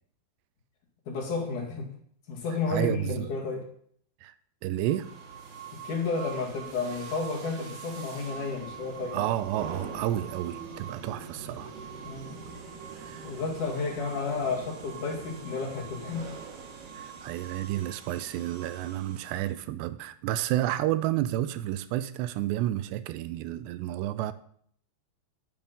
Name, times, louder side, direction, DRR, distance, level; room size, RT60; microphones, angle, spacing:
voice 1, 1.1-1.9 2.3-3.6 5.7-9.2 12.0-12.4 13.2-16.3, left 4 dB, 50° left, 3.2 m, -32 dB
voice 2, 2.7-3.3 4.2-4.4 4.6-5.1 9.1-11.7 13.0-13.4 17.0-24.3, right 13 dB, 80° right, 2.6 m, -31 dB
sound 1, 4.8-19.6, right 6 dB, 65° right, 3.8 m, -43 dB
11.0 x 9.4 x 5.5 m
omnidirectional pair, 5.1 m